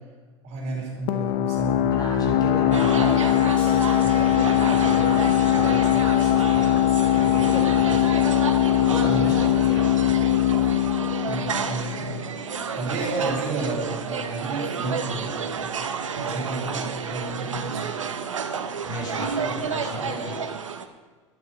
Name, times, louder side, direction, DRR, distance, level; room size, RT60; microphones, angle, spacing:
voice 1, 0.4-1.8 9.0-9.3 10.6-10.8 11.2-15.8 16.1-17.9, right 2 dB, 50° right, -1 dB, 4.2 m, -31 dB
sound 1, 1.1-12.5, left 12 dB, 50° left, 0.9 m, -21 dB
voice 2, 1.8-8.3 8.7-10.1 13.2-13.3 18.8-20.5, left 1 dB, 25° left, -1 dB, 4.3 m, -35 dB
sound 2, 2.7-20.9, right 6 dB, 80° right, 0.9 m, -31 dB
sound 3, 3.6-4.9, left 3 dB, 5° left, 4.3 m, -41 dB
11.0 x 8.3 x 6.5 m, 1.4 s
figure-of-eight pair, 85°, 16 cm